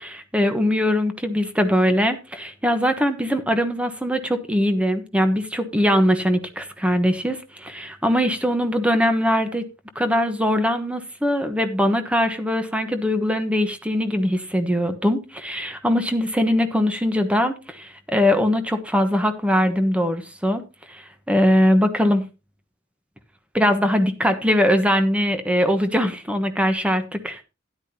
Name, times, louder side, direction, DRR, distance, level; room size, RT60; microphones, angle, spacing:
voice 1, 0.0-9.6 9.9-20.6 20.9-22.2 23.5-27.4, equal, 5° right, 1.2 m, -21 dB
12.5 x 10.5 x 2.9 m
head